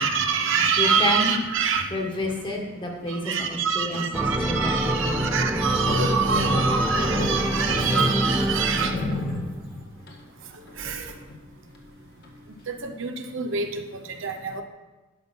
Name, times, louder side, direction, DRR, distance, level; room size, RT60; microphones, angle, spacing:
voice 1, 0.0-1.9 3.3-8.9 10.8-11.0 12.7-13.7 14.2-14.6, right 6 dB, 60° right, 5 dB, 0.8 m, -25 dB
voice 2, 0.8-1.3 1.9-5.3, left 1 dB, 20° left, 0 dB, 1.7 m, -29 dB
sound 1, 4.1-9.7, equal, 5° right, 1.0 m, -26 dB
sound 2, 5.6-9.7 10.1-10.2 10.7-11.4 11.7-11.8 12.2-12.3, left 2 dB, 50° left, 1.5 m, -30 dB
11.5 x 5.7 x 5.6 m, 1.2 s
head